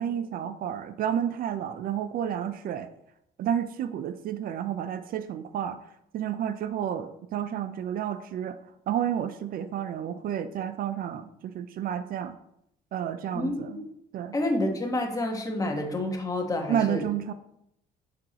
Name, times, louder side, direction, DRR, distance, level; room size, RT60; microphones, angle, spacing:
voice 1, 0.0-2.9 3.4-5.8 6.1-8.6 8.9-12.4 12.9-13.9 14.1-14.4 16.7-17.3, right 9 dB, 60° right, 11 dB, 0.5 m, -30 dB
voice 2, 13.3-13.8 14.3-17.1, left 1 dB, 20° left, 2 dB, 1.2 m, -29 dB
6.6 x 5.9 x 2.9 m, 0.76 s
cardioid pair, 110°, 17 cm